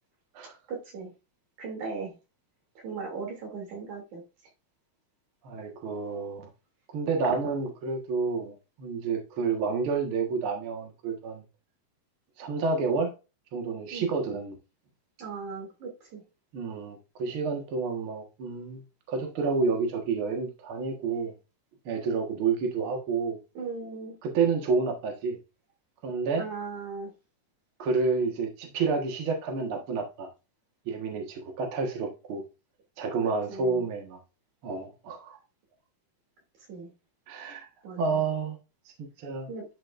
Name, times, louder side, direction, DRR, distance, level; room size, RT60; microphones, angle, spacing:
voice 1, 0.7-1.1 1.6-2.1 2.8-4.2 13.9-14.1 15.2-16.2 23.6-24.2 26.4-27.1 33.5-33.8 36.7-36.9 37.8-38.0 39.5-39.7, right 4 dB, 85° right, 0 dB, 4.2 m, -37 dB
voice 2, 5.4-6.5 6.9-11.4 12.4-13.1 13.5-14.6 16.5-21.3 21.9-23.4 24.2-25.4 26.0-26.5 27.8-30.3 30.9-32.4 33.0-34.2 34.6-35.4 37.3-37.7 38.0-38.6 39.0-39.5, right 4 dB, 50° right, 2 dB, 2.1 m, -29 dB
10.5 x 6.1 x 2.5 m, 0.29 s
omnidirectional pair, 3.3 m